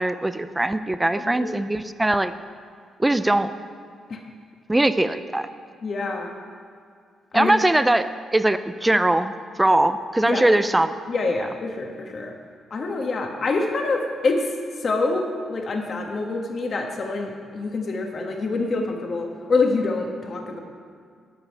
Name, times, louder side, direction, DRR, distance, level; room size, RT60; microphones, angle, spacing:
voice 1, 0.0-2.3 3.0-3.5 4.7-5.5 7.3-8.1 8.3-10.9, right 1 dB, 10° right, 12 dB, 0.4 m, -21 dB
voice 2, 1.2-1.5 4.1-4.2 5.8-6.3 7.3-7.6 10.2-10.6 11.1-12.3 12.7-14.5 14.8-20.6, left 3 dB, 45° left, 2 dB, 1.4 m, -26 dB
11.5 x 5.6 x 8.4 m, 2.1 s
cardioid pair, 120°, 0 cm